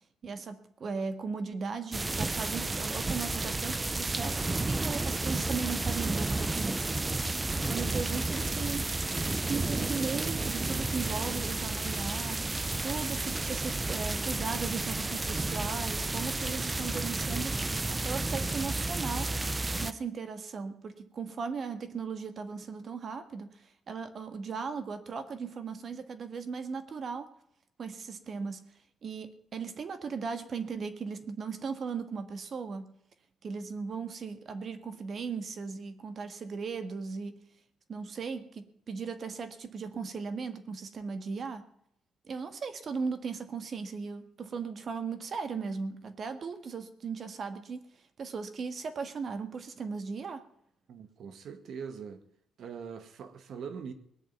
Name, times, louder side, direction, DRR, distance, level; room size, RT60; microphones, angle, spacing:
voice 1, 0.2-6.9 7.6-8.9 9.5-12.5 12.8-19.4 19.8-27.3 27.8-28.6 29.0-32.9 33.4-37.3 37.9-41.6 42.3-47.9 48.2-50.5, right 5 dB, 50° right, 1.7 m, -37 dB
sound 1, 1.9-19.9, right 2 dB, 20° right, 0.8 m, -32 dB
voice 2, 50.9-52.2 52.6-53.9, right 6 dB, 65° right, 1.8 m, -42 dB
19.5 x 6.8 x 9.4 m
cardioid pair, 90°, 0 cm